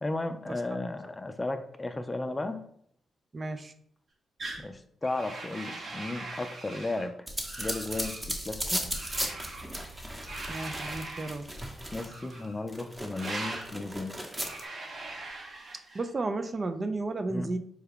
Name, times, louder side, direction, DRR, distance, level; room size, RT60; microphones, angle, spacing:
voice 1, 0.0-2.6 4.6-7.3 7.6-8.8 11.9-14.2 17.3-17.5, left 2 dB, 25° left, 8 dB, 0.4 m, -34 dB
voice 2, 3.3-3.7 10.5-11.5 15.9-17.6, right 2 dB, 40° right, 8 dB, 0.4 m, -33 dB
sound 1, 4.4-4.6 5.0-7.1 7.4-8.2 8.9-9.7 10.3-11.4 12.0-12.6 13.1-13.7 14.3-16.1, right 2 dB, 60° right, 0.9 m, -41 dB
sound 2, 7.3-12.3 12.7-14.6, right 1 dB, 15° right, 0.9 m, -36 dB
4.6 x 2.2 x 3.5 m, 0.66 s
supercardioid pair, 50°, 0 cm